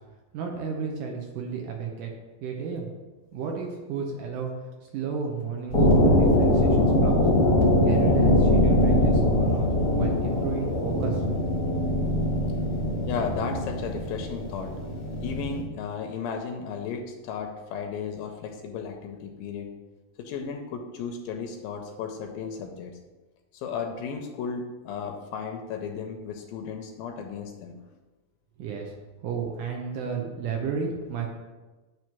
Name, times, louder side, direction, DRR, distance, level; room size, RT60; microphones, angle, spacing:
voice 1, 0.3-2.1 2.4-2.9 3.3-4.5 4.9-7.2 7.9-11.2 28.6-28.9 29.2-31.3, right 6 dB, 75° right, 1 dB, 2.0 m, -32 dB
sound 1, 5.7-15.6, left 1 dB, 60° left, 0.8 m, -22 dB
voice 2, 13.1-14.7 15.2-19.7 20.2-23.0 23.5-27.8, left 6 dB, 80° left, 4 dB, 2.2 m, -34 dB
9.3 x 3.1 x 5.9 m, 1.2 s
omnidirectional pair, 4.3 m